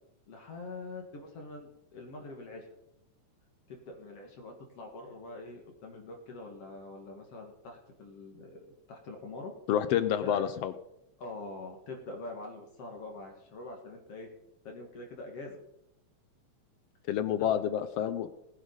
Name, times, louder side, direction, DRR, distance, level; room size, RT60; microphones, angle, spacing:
voice 1, 0.3-2.7 3.7-9.5 10.2-10.5 11.2-14.3 14.6-15.6 17.4-17.6, left 2 dB, 55° left, 2 dB, 2.6 m, -44 dB
voice 2, 9.7-10.7 17.1-18.3, left 10 dB, 75° left, 11 dB, 1.5 m, -28 dB
19.5 x 10.5 x 4.0 m, 0.83 s
omnidirectional pair, 3.5 m